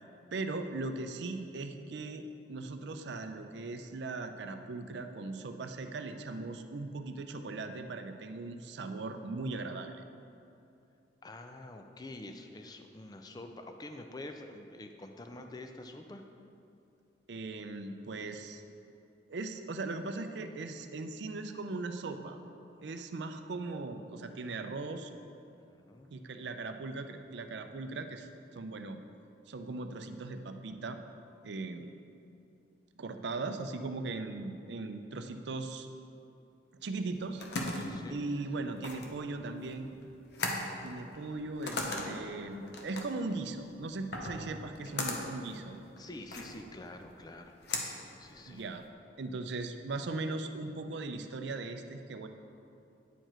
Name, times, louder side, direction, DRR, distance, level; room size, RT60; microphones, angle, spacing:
voice 1, 0.3-10.0 17.3-18.6 19.3-22.4 22.8-25.1 26.1-28.3 28.5-29.0 29.5-31.0 31.4-31.8 33.0-35.9 36.8-37.4 38.1-40.0 40.8-45.8 48.5-48.8 49.2-52.3, right 3 dB, 70° right, 7 dB, 0.5 m, -39 dB
voice 2, 11.2-16.2 22.9-23.0 25.7-26.1 37.8-38.2 41.1-41.4 46.0-47.5 48.2-48.6, left 2 dB, 20° left, 5 dB, 0.4 m, -47 dB
sound 1, 37.0-48.9, left 2 dB, 60° left, 0.8 m, -39 dB
9.0 x 4.6 x 4.4 m, 2.7 s
head